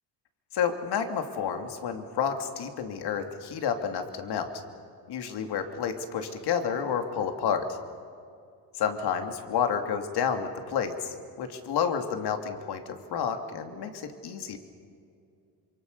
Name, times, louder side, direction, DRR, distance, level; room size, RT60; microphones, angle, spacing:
voice 1, 0.5-4.5 5.1-7.7 8.8-14.6, left 7 dB, 70° left, 6 dB, 2.8 m, -30 dB
27.0 x 24.0 x 6.8 m, 2.3 s
cardioid pair, 100°, 41 cm